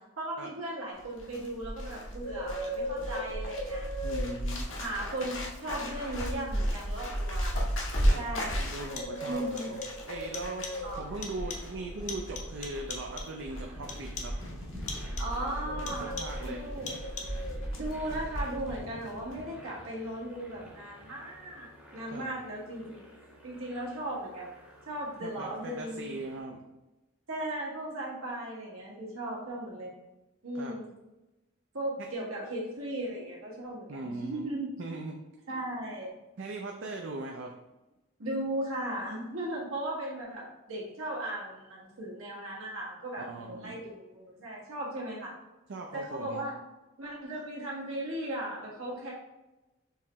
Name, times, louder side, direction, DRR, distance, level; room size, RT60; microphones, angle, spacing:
voice 1, 0.2-3.9 4.8-7.8 8.1-8.6 9.3-9.7 10.8-11.1 15.2-16.1 16.4-16.9 17.8-23.0 23.4-24.5 24.9-26.2 27.3-29.9 30.4-30.9 31.7-34.7 35.5-36.1 38.2-45.3 45.9-46.6 47.0-49.1, right 1 dB, 80° right, -4 dB, 1.5 m, -37 dB
Bird, 1.0-18.8 19.1-19.4, equal, 65° left, 1.0 m, -34 dB
voice 2, 4.0-4.7 8.1-14.4 15.6-16.7 22.1-22.3 25.2-26.6 30.6-30.8 32.0-32.1 33.9-34.5 34.8-35.2 36.4-37.5 43.2-43.8 45.7-46.4, right 2 dB, 60° right, 2 dB, 0.4 m, -40 dB
sound 1, 8.7-9.3 9.6-10.1 10.3-10.9 11.2-11.8 12.1-13.4 13.9-14.5 14.9-15.4 15.9-16.5 16.9-17.5, left 4 dB, 35° left, 0.6 m, -42 dB
sound 2, 9.9-26.4, left 1 dB, 10° right, 0.8 m, -50 dB
4.6 x 3.0 x 3.4 m, 1.0 s
head